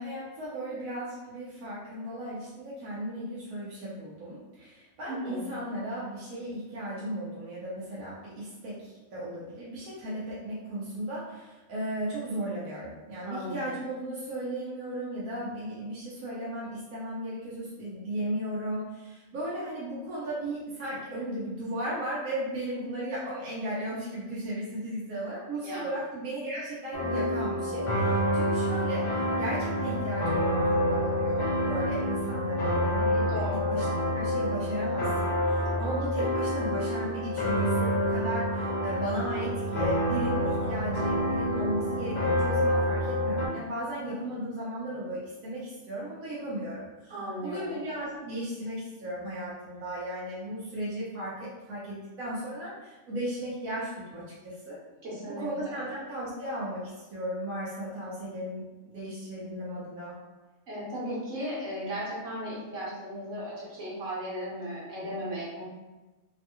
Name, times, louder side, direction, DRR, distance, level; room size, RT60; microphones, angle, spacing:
voice 1, 0.0-33.9 34.1-54.8 55.3-60.1, right 1 dB, 90° right, -8 dB, 1.2 m, -36 dB
voice 2, 5.1-5.5 13.2-13.6 25.6-25.9 33.3-33.8 35.7-35.8 47.1-47.8 55.0-55.7 60.7-65.6, equal, 65° right, -7 dB, 1.5 m, -36 dB
sound 1, 26.9-43.5, equal, 60° left, 0.4 m, -28 dB
3.2 x 2.2 x 2.9 m, 1.1 s
omnidirectional pair, 1.4 m